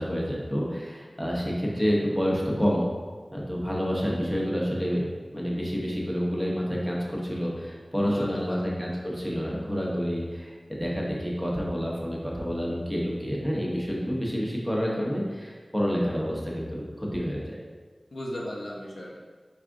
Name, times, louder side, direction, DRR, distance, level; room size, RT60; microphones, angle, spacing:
voice 1, 0.0-2.8 3.3-5.0 5.3-17.6, equal, 5° right, -4 dB, 0.9 m, -28 dB
voice 2, 7.9-8.6 18.1-19.2, equal, 85° left, -3 dB, 0.7 m, -36 dB
4.8 x 2.4 x 3.6 m, 1.4 s
wide cardioid pair, 60°, 0 cm